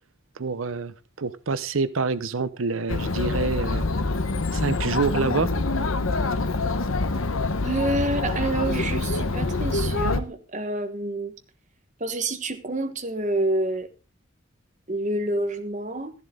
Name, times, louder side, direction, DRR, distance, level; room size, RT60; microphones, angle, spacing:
voice 1, 0.4-3.9 4.5-5.5 7.1-7.2, right 4 dB, 75° right, 0.7 m, -27 dB
Chatter, 2.9-10.2, left 3 dB, 85° left, 1.0 m, -25 dB
voice 2, 7.6-11.3 12.0-13.9 14.9-16.1, right 1 dB, 35° right, 1.3 m, -28 dB
14.0 x 11.0 x 3.7 m
head